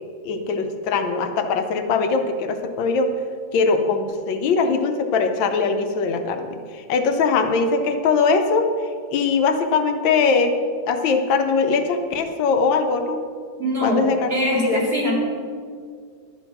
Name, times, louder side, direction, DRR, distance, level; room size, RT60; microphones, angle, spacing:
voice 1, 0.2-3.1 3.5-8.7 9.1-10.6 10.9-13.2 13.8-14.8, left 4 dB, 85° left, 7 dB, 1.5 m, -21 dB
voice 2, 13.6-15.1, equal, 30° right, -5 dB, 2.4 m, -22 dB
12.0 x 4.4 x 5.8 m, 2.1 s
omnidirectional pair, 2.0 m